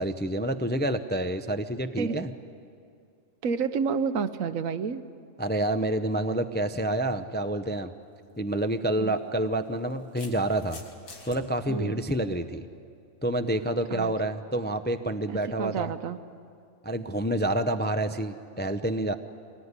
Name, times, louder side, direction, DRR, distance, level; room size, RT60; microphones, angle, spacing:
voice 1, 0.0-2.3 5.4-7.9 8.4-10.8 11.2-12.6 13.2-15.9 16.8-19.1, right 1 dB, 15° left, 8 dB, 0.4 m, -28 dB
voice 2, 2.0-2.3 3.4-5.0 9.0-9.2 11.7-12.0 13.9-14.1 15.3-16.2, right 6 dB, 80° right, 12 dB, 1.3 m, -30 dB
sound 1, 8.2-8.4 9.5-11.4, left 3 dB, 85° left, 2.7 m, -46 dB
24.0 x 19.0 x 9.7 m, 2.4 s
omnidirectional pair, 1.4 m